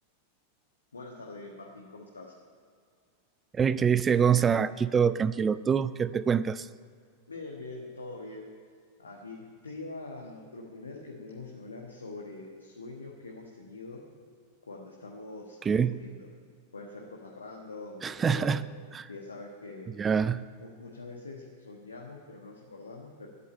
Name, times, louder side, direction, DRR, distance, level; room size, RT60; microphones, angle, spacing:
voice 1, 0.9-2.3 7.3-8.5 9.0-14.0 14.7-16.3 16.7-18.6 19.1-19.9 20.6-23.3, left 3 dB, 75° left, 0 dB, 1.3 m, -44 dB
voice 2, 3.5-6.7 15.7-16.0 18.0-18.6 18.9-19.1 20.0-20.4, right 7 dB, 20° right, 16 dB, 0.3 m, -25 dB
11.0 x 8.3 x 8.7 m, 2.1 s
figure-of-eight pair, 90°, 0 cm